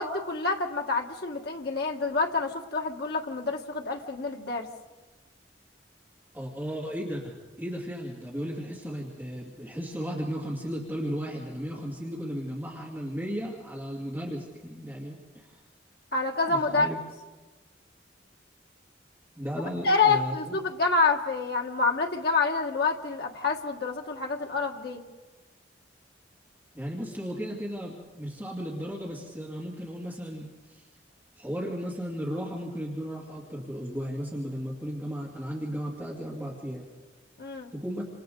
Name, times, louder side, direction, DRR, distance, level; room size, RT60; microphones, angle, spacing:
voice 1, 0.0-4.7 16.1-16.9 19.8-25.0 37.4-37.7, left 4 dB, 60° left, 2 dB, 1.6 m, -27 dB
voice 2, 6.3-15.6 16.5-17.0 19.4-20.6 26.7-30.8 31.4-36.9 37.7-38.0, equal, 10° right, -4 dB, 2.4 m, -35 dB
28.5 x 26.5 x 3.9 m, 1.3 s
head